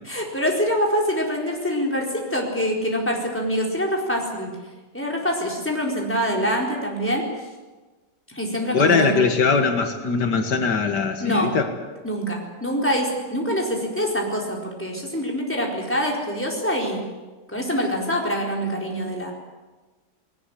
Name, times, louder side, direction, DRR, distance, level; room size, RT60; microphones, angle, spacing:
voice 1, 0.0-4.5 4.9-7.2 8.3-9.2 11.2-11.5 12.0-17.0 17.5-19.3, equal, 5° left, -1 dB, 4.3 m, -25 dB
voice 2, 8.7-11.7, left 5 dB, 75° left, 6 dB, 2.2 m, -21 dB
20.0 x 18.5 x 10.0 m, 1.3 s
omnidirectional pair, 1.8 m